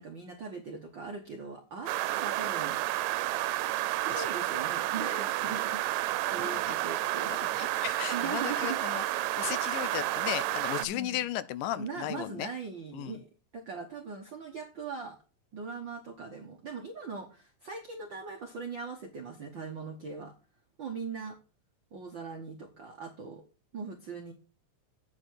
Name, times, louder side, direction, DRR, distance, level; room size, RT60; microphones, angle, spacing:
voice 1, 0.0-2.8 3.8-5.8 6.2-7.8 8.1-8.8 10.8-11.2 11.7-15.2 15.5-20.3 20.8-21.4 21.9-23.4 23.7-24.3, right 5 dB, 65° right, 1.1 m, -40 dB
sound 1, 1.9-10.9, right 16 dB, 85° right, 2.2 m, -31 dB
voice 2, 6.4-6.7 7.6-9.0 9.4-12.5 12.9-13.2, left 13 dB, 80° left, 2.1 m, -35 dB
8.7 x 6.7 x 4.6 m
omnidirectional pair, 3.9 m